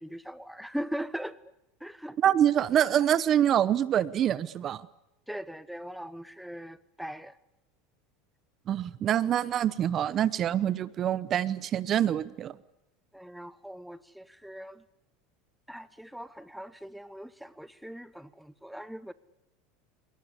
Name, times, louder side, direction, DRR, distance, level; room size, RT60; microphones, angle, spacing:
voice 1, 0.0-1.4 1.8-2.2 5.3-7.4 13.1-14.8 15.7-19.1, equal, ahead, 0.9 m, -40 dB
voice 2, 2.2-4.8 8.7-12.6, right 10 dB, 40° right, 0.9 m, -25 dB
27.0 x 19.0 x 9.9 m
supercardioid pair, 120°, 0 cm